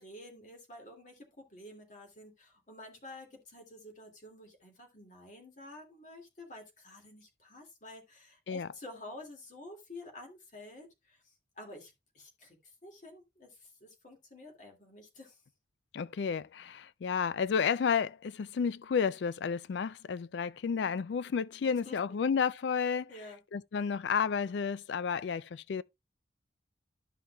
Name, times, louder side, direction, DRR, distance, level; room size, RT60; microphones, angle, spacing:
voice 1, 0.0-15.4 21.8-22.0 23.1-23.4, left 1 dB, 40° left, 2.3 m, -50 dB
voice 2, 15.9-23.1 23.5-25.8, left 6 dB, 70° left, 0.4 m, -31 dB
12.5 x 5.6 x 2.3 m
head